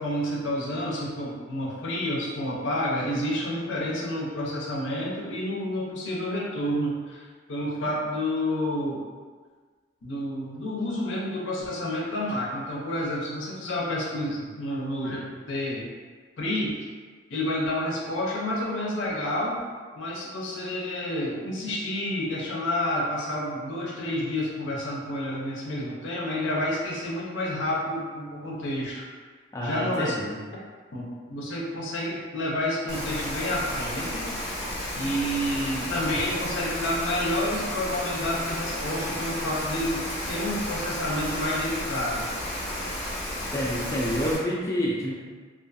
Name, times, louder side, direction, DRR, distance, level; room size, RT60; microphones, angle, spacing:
voice 1, 0.0-9.1 10.0-15.9 16.4-16.8 17.3-19.6 19.9-29.0 29.6-30.1 30.9-34.3 34.9-42.3, left 1 dB, 80° left, -3 dB, 0.6 m, -29 dB
voice 2, 29.5-30.4 43.5-45.1, equal, 15° left, -5 dB, 0.3 m, -28 dB
Rain, 32.9-44.4, left 1 dB, 35° left, 0.7 m, -32 dB
2.4 x 2.3 x 2.5 m, 1.5 s
head